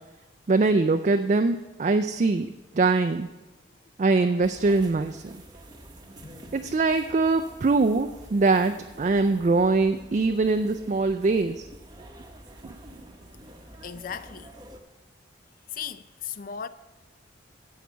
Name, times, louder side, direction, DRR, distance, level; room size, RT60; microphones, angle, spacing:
voice 1, 0.5-2.5 2.7-3.3 4.0-5.4 6.5-11.7 12.7-13.1, right 3 dB, 40° right, 0.4 m, -23 dB
sound 1, 4.4-14.8, right 1 dB, 20° right, 0.9 m, -48 dB
voice 2, 13.3-14.5 15.7-16.7, left 7 dB, 50° left, 0.4 m, -38 dB
10.5 x 7.4 x 6.9 m
head